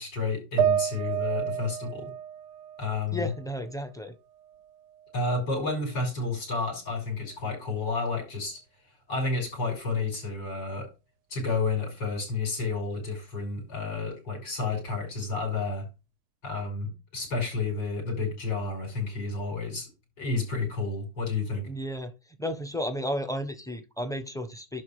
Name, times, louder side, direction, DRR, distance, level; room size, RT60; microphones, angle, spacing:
voice 1, 0.0-2.1 2.8-3.3 5.1-8.6 9.1-10.9 11.3-15.9 16.4-19.9 20.2-21.7, left 3 dB, 85° left, 1 dB, 6.4 m, -31 dB
sound 1, 0.6-4.0 4.4-5.4, right 10 dB, 75° right, 1.2 m, -31 dB
voice 2, 3.1-4.1 21.7-22.1 22.4-24.8, equal, ahead, 7 dB, 0.9 m, -33 dB
11.5 x 4.5 x 5.1 m, 0.28 s
omnidirectional pair, 1.9 m